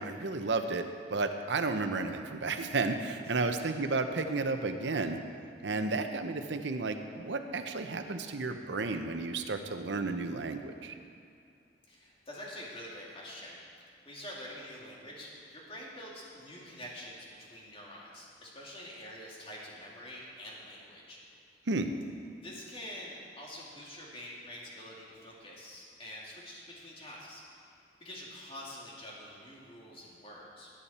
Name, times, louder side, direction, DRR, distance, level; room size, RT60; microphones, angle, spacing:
voice 1, 0.0-5.2 5.6-10.9 21.7-21.9, right 3 dB, 75° right, 7 dB, 0.8 m, -32 dB
voice 2, 3.2-3.5 11.9-21.2 22.4-27.7 28.0-30.7, left 1 dB, 30° left, -4 dB, 2.5 m, -46 dB
18.0 x 8.9 x 4.3 m, 2.3 s
head